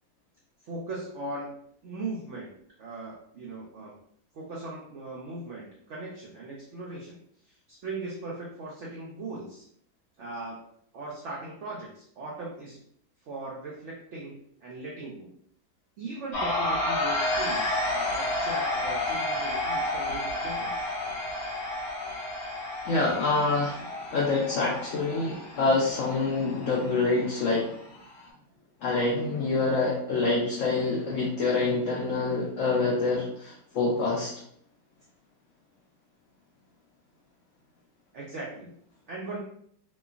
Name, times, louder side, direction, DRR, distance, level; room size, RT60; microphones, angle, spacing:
voice 1, 0.6-1.5 1.8-2.5 2.8-3.9 4.3-7.2 7.4-9.6 10.2-10.6 10.9-12.8 13.3-15.3 16.0-20.9 38.1-38.7 39.1-39.4, right 2 dB, 85° right, -4 dB, 0.6 m, -39 dB
sound 1, 16.3-28.3, left 1 dB, 65° left, 1.1 m, -31 dB
voice 2, 22.8-27.7 28.8-34.3, left 3 dB, 90° left, -2 dB, 0.6 m, -26 dB
3.0 x 2.2 x 2.4 m, 0.67 s
omnidirectional pair, 1.9 m